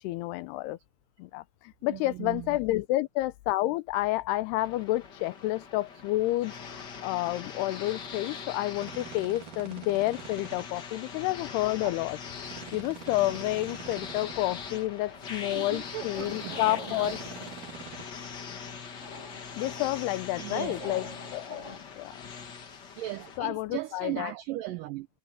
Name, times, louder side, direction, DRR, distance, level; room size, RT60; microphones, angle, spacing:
voice 1, 0.0-0.8 1.2-12.2 12.7-17.2 19.6-21.1 21.3-22.3 23.4-24.3, left 17 dB, 85° left, 2.7 m, -30 dB
voice 2, 1.8-2.6 11.8-11.9 15.4-16.6 16.9-17.1 20.4-20.9 22.9-25.1, right 16 dB, 90° right, 1.9 m, -37 dB
sound 1, 4.6-23.4, left 6 dB, 55° left, 1.2 m, -42 dB
sound 2, 8.8-10.7 12.5-14.4 16.1-18.0, right 9 dB, 55° right, 3.7 m, -45 dB
sound 3, 14.6-21.8, left 3 dB, 20° left, 2.2 m, -46 dB
omnidirectional pair, 4.7 m